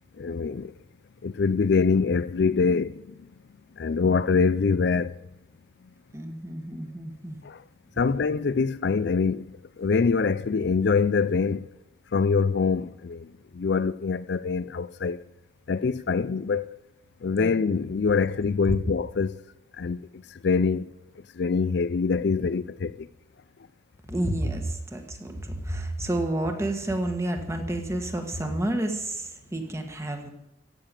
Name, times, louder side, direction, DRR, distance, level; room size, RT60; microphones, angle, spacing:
voice 1, 0.2-0.7 1.2-2.9 3.8-5.1 8.0-9.4 9.8-11.6 12.1-13.2 13.6-15.2 15.7-16.7 17.2-19.3 19.8-20.0 20.4-20.9 21.4-22.9, left 5 dB, 55° left, 0.4 m, -24 dB
voice 2, 6.1-7.4 17.4-17.5 24.1-30.3, right 1 dB, 15° right, 1.5 m, -30 dB
15.0 x 6.7 x 9.0 m
head